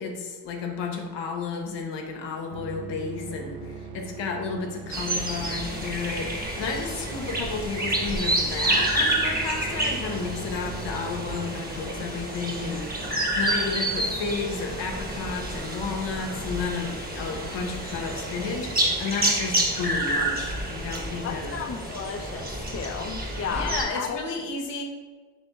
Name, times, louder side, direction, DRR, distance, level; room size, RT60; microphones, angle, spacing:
voice 1, 0.0-21.6 23.5-24.8, left 4 dB, 80° left, 2 dB, 0.8 m, -32 dB
sound 1, 2.5-11.6, right 4 dB, 80° right, 0.5 m, -41 dB
sound 2, 4.9-23.8, right 1 dB, 20° right, 1.0 m, -29 dB
voice 2, 21.2-24.2, left 6 dB, 35° left, 5 dB, 0.5 m, -33 dB
3.4 x 3.1 x 4.2 m, 1.4 s
supercardioid pair, 45°, 43 cm